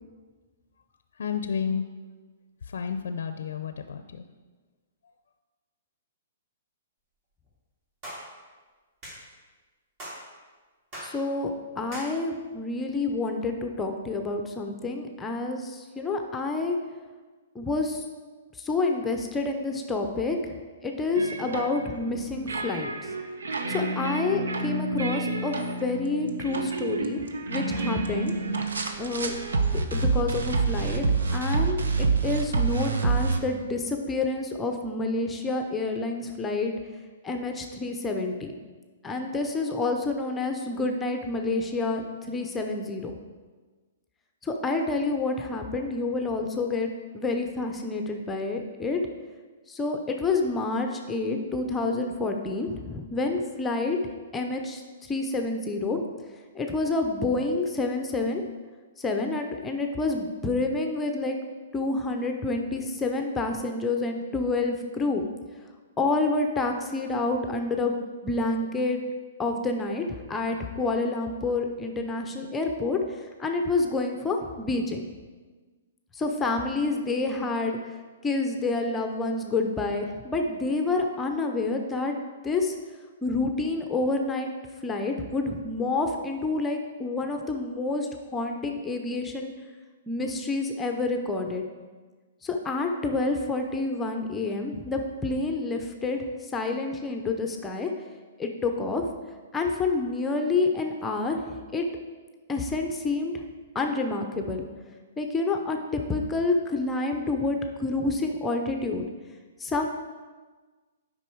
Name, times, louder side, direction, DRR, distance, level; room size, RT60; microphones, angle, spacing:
voice 1, 1.2-1.9 2.7-4.2, left 6 dB, 75° left, 9 dB, 0.5 m, -31 dB
sound 1, 8.0-8.3 9.0-9.2 10.0-10.2 10.9-11.2 11.9-12.1, equal, 35° right, 2.7 m, -39 dB
voice 2, 11.0-16.8 17.5-18.0 18.6-20.4 20.8-23.1 23.7-27.2 27.5-28.3 29.0-29.3 29.9-31.0 31.3-36.7 37.2-38.5 39.0-43.1 44.4-49.0 49.7-54.0 54.3-54.8 55.1-56.0 56.5-58.4 59.0-61.4 61.7-65.2 66.0-68.0 68.2-69.0 69.4-75.0 76.1-77.8 78.2-82.2 82.4-82.7 83.2-84.5 84.8-89.5 90.1-91.6 92.4-97.9 98.4-99.0 99.5-101.4 101.7-101.8 102.5-103.4 103.7-104.6 105.2-109.0 109.6-109.9, left 3 dB, 10° left, 4 dB, 0.6 m, -28 dB
sound 2, 21.2-33.4, right 3 dB, 85° right, 0.8 m, -28 dB
8.2 x 5.4 x 4.6 m, 1.4 s
hypercardioid pair, 145°, 0 cm